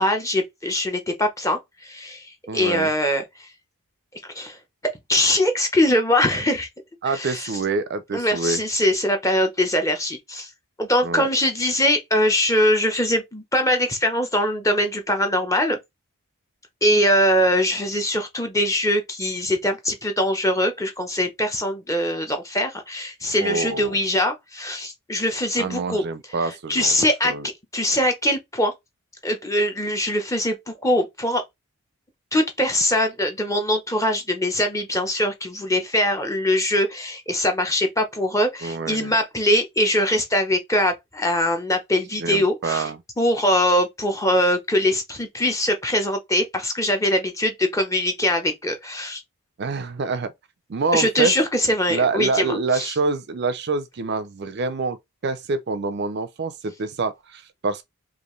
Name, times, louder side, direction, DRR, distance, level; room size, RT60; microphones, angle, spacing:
voice 1, 0.0-3.5 4.3-4.6 5.1-6.7 7.1-7.5 8.1-10.5 10.8-15.8 16.8-26.0 26.4-27.3 27.7-28.7 29.2-31.4 32.3-42.9 43.2-49.2 50.9-52.9, left 1 dB, 15° left, 0.8 m, -22 dB
voice 2, 2.5-2.9 7.0-8.6 11.0-11.3 23.4-23.9 25.6-26.9 27.2-27.5 38.6-39.1 42.2-43.0 49.6-50.3 50.7-51.3 51.9-55.0 55.2-57.8, right 4 dB, 50° right, 0.4 m, -26 dB
5.2 x 2.5 x 3.1 m
head